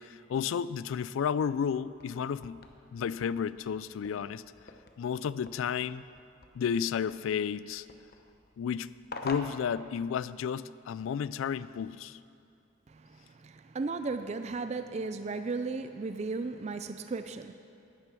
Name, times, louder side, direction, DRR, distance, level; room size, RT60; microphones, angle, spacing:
voice 1, 0.0-2.6 2.9-4.4 5.0-6.0 6.5-7.9 8.6-8.9 9.2-12.2, left 7 dB, 80° left, 17 dB, 0.3 m, -32 dB
sound 1, 1.8-10.5, left 2 dB, 50° left, 0.8 m, -48 dB
voice 2, 12.9-17.5, right 3 dB, 35° right, 9 dB, 0.3 m, -35 dB
10.5 x 9.5 x 6.1 m, 2.4 s
head